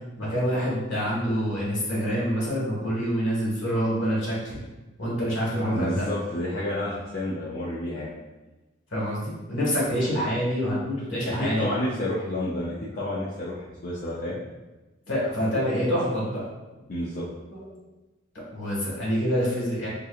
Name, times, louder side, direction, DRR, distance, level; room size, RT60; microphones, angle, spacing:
voice 1, 0.2-4.6 5.0-6.0 8.9-11.7 15.1-16.4 17.5-17.6 18.5-19.9, equal, 70° left, -6 dB, 1.5 m, -26 dB
voice 2, 5.7-8.1 11.3-14.4 16.9-17.2, left 1 dB, 40° left, -7 dB, 0.5 m, -30 dB
3.6 x 2.8 x 2.4 m, 1.1 s
head